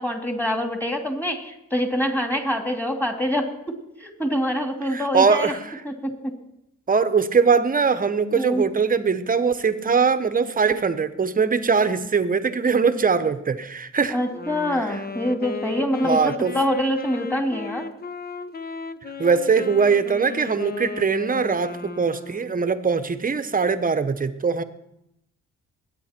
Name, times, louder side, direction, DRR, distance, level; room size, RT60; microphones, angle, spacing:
voice 1, 0.0-3.7 4.0-5.5 5.8-6.3 8.3-8.6 14.1-17.8, equal, 5° left, 3 dB, 2.6 m, -25 dB
voice 2, 4.8-5.6 6.9-14.1 16.0-16.5 19.2-24.6, right 5 dB, 30° right, 11 dB, 1.0 m, -21 dB
Wind instrument woodwind instrument, 14.3-22.6, left 4 dB, 30° left, 0.8 m, -35 dB
21.0 x 9.2 x 4.4 m, 0.82 s
cardioid pair, 90°, 30 cm